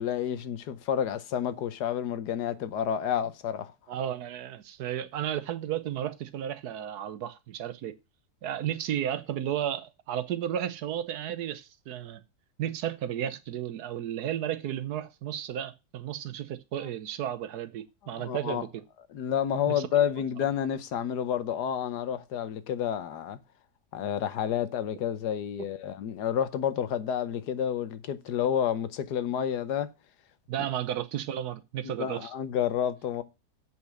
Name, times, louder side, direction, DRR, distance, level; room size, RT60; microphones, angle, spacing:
voice 1, 0.0-3.7 18.1-18.6 19.1-23.4 23.9-29.9 31.8-33.2, left 9 dB, 85° left, 1.5 m, -30 dB
voice 2, 3.9-8.0 8.4-12.2 12.6-18.8 19.7-19.8 30.5-32.3, right 10 dB, 80° right, 1.3 m, -33 dB
7.7 x 5.7 x 6.2 m
omnidirectional pair, 1.7 m